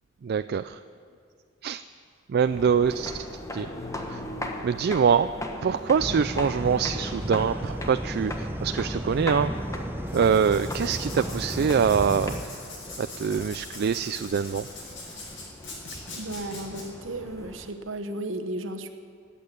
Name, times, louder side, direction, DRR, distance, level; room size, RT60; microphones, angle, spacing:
voice 1, 0.2-0.8 1.6-1.8 2.3-3.3 3.5-3.7 4.1-4.2 4.6-5.3 5.6-9.5 10.1-12.3 13.0-14.7, right 6 dB, 55° right, 11 dB, 0.3 m, -24 dB
sound 1, 2.4-17.7, left 1 dB, 15° left, 1.3 m, -39 dB
sound 2, 6.0-12.4, right 1 dB, 10° right, 0.7 m, -33 dB
Writing, 10.0-16.8, left 3 dB, 65° left, 5.5 m, -42 dB
voice 2, 16.2-18.9, right 1 dB, 70° right, 7 dB, 1.1 m, -34 dB
20.0 x 8.6 x 8.3 m, 2.2 s
head